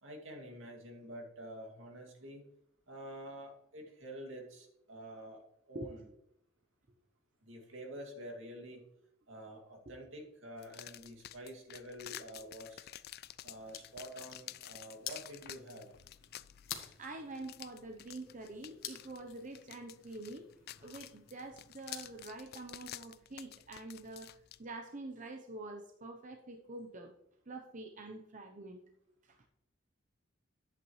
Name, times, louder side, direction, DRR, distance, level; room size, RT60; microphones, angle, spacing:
voice 1, 0.0-2.5 2.9-6.0 7.4-8.8 9.3-12.9 13.4-15.9, right 1 dB, 75° right, 1 dB, 2.3 m, -48 dB
sound 1, 10.6-24.6, left 13 dB, 50° left, 0.4 m, -51 dB
sound 2, 13.4-22.3, left 9 dB, 85° left, 1.3 m, -50 dB
voice 2, 17.0-20.5 20.8-27.1 27.5-28.8 29.2-29.4, right 2 dB, 40° right, 3 dB, 0.8 m, -46 dB
10.5 x 8.4 x 3.1 m, 0.80 s
head